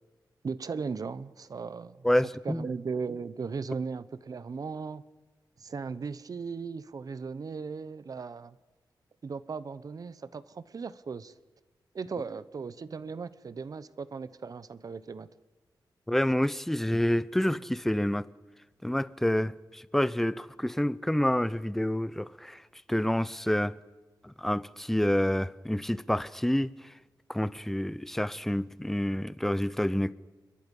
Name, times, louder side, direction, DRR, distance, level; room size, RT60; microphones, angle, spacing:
voice 1, 0.4-2.1 2.4-5.0 5.6-8.6 9.2-11.3 11.9-15.3, right 5 dB, 50° right, 1.0 m, -37 dB
voice 2, 2.0-2.7 16.1-18.3 18.8-22.6 22.9-23.8 24.2-26.9 27.3-30.1, left 1 dB, 5° left, 0.7 m, -28 dB
29.5 x 22.5 x 5.5 m
wide cardioid pair, 110°, 8 cm